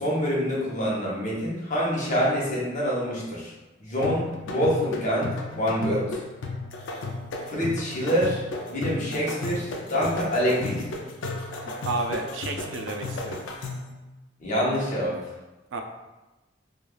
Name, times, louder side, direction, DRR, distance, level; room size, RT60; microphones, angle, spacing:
voice 1, 0.0-3.5 3.8-6.1 7.5-8.4 8.7-10.8 14.4-15.2, equal, 40° left, -5 dB, 0.8 m, -26 dB
sound 1, 4.0-14.0, left 2 dB, 85° left, 0.4 m, -34 dB
voice 2, 11.6-13.4 15.7-15.8, right 3 dB, 75° right, 3 dB, 0.4 m, -31 dB
3.1 x 2.3 x 2.2 m, 1.1 s
head